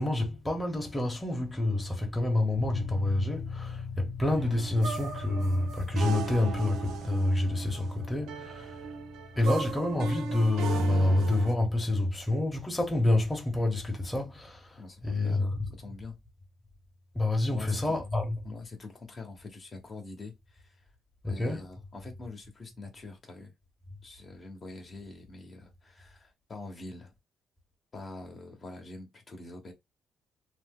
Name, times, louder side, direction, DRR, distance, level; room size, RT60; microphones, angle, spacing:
voice 1, 0.0-8.8 9.4-15.6 17.1-18.4 21.2-21.6, left 2 dB, 15° left, 1.0 m, -28 dB
sound 1, 2.5-17.0, left 5 dB, 90° left, 1.0 m, -44 dB
sound 2, 4.2-11.5, right 6 dB, 85° right, 0.6 m, -37 dB
voice 2, 14.8-16.2 17.5-18.0 18.4-20.9 21.2-23.5 24.0-27.1 27.9-29.7, left 3 dB, 40° left, 1.0 m, -45 dB
2.8 x 2.2 x 3.5 m
cardioid pair, 90°, 0 cm